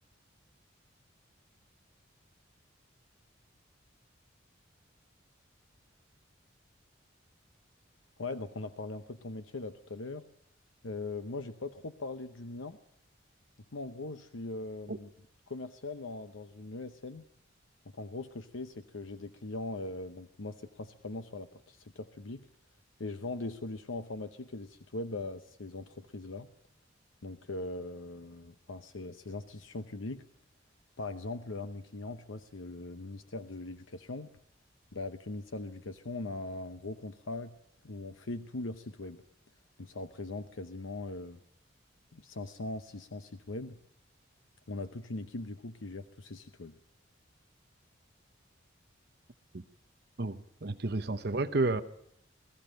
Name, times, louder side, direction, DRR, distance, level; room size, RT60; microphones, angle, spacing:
voice 1, 8.2-10.2 10.8-12.8 13.7-15.1 15.5-17.2 17.9-22.5 23.0-26.5 27.2-30.2 31.0-34.3 34.9-37.5 37.8-39.2 39.8-41.4 42.1-43.8 44.7-46.8, left 2 dB, 90° left, 9 dB, 0.9 m, -40 dB
voice 2, 50.2-51.8, right 2 dB, 55° right, 10 dB, 0.8 m, -31 dB
20.5 x 15.0 x 9.0 m, 0.73 s
head